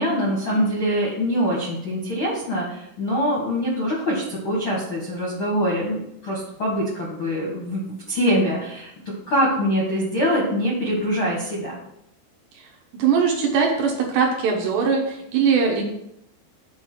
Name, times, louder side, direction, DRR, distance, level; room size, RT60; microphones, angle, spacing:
voice 1, 0.0-11.8, equal, 75° left, -4 dB, 1.1 m, -24 dB
voice 2, 13.0-15.8, right 6 dB, 70° right, 1 dB, 2.9 m, -21 dB
7.8 x 4.0 x 6.2 m, 0.77 s
omnidirectional pair, 5.6 m